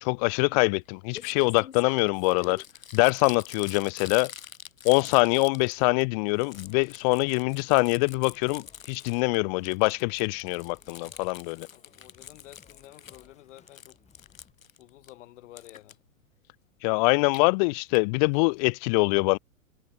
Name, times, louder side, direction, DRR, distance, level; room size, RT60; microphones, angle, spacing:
voice 1, 0.0-2.6 2.9-4.3 4.8-11.7 16.8-19.4, left 31 dB, 35° left, 0.5 m, -24 dB
Crumpling crinkling, 0.8-0.9 1.1-6.0 6.3-9.4 9.7-13.3 13.6-15.1 15.6-15.9 17.1-17.4 17.9-18.0 18.3-18.4 18.6-18.7, left 9 dB, 90° left, 5.4 m, -46 dB
Singing, 6.5-14.5, left 6 dB, 15° left, 6.6 m, -60 dB
voice 2, 11.7-14.0 14.8-16.0, left 15 dB, 65° left, 2.8 m, -51 dB
hypercardioid pair, 130°, 39 cm